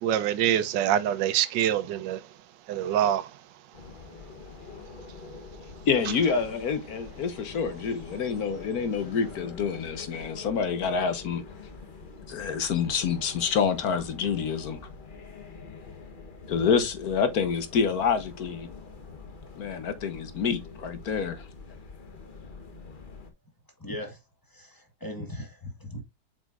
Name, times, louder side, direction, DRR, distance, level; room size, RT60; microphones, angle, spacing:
voice 1, 0.0-2.2 2.7-3.3, right 10 dB, 80° right, 1.3 m, -25 dB
sound 1, 3.7-23.3, left 4 dB, 35° left, 1.0 m, -45 dB
voice 2, 5.9-11.4 12.3-14.8 16.5-18.7 19.6-21.5, left 6 dB, 60° left, 1.3 m, -27 dB
voice 3, 23.8-24.2 24.5-26.0, left 1 dB, 15° left, 1.2 m, -38 dB
7.4 x 5.3 x 2.4 m
omnidirectional pair, 2.0 m